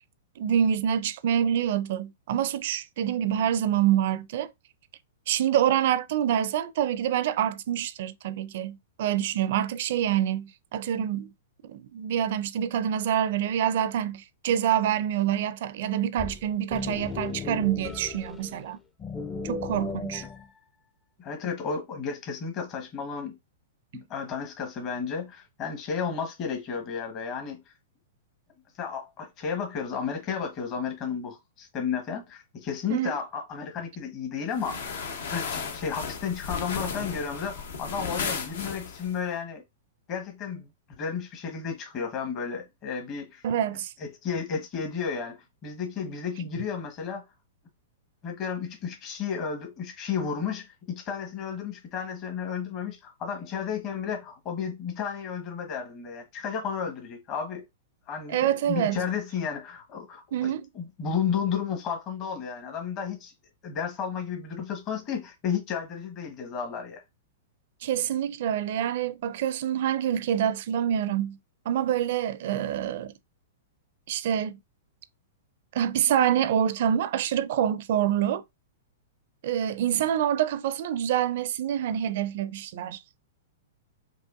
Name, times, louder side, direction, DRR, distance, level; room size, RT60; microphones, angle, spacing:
voice 1, 0.4-4.5 5.3-11.3 11.6-18.8 19.4-20.3 32.9-33.1 43.4-43.9 58.3-59.0 60.3-60.7 67.8-71.4 71.7-73.1 74.1-74.6 75.7-78.4 79.4-83.0, right 10 dB, 60° right, 0.4 m, -26 dB
sound 1, 16.2-18.7 19.0-20.5, left 5 dB, 15° left, 0.5 m, -36 dB
voice 2, 21.2-23.4 23.9-27.6 28.8-39.6 40.1-40.7 41.0-43.4 44.0-47.2 48.2-57.6 58.1-63.3 63.6-67.0, left 6 dB, 35° left, 1.1 m, -33 dB
sound 2, 34.5-39.2, left 5 dB, 70° left, 0.7 m, -34 dB
4.7 x 2.5 x 2.5 m
hypercardioid pair, 115°, 0 cm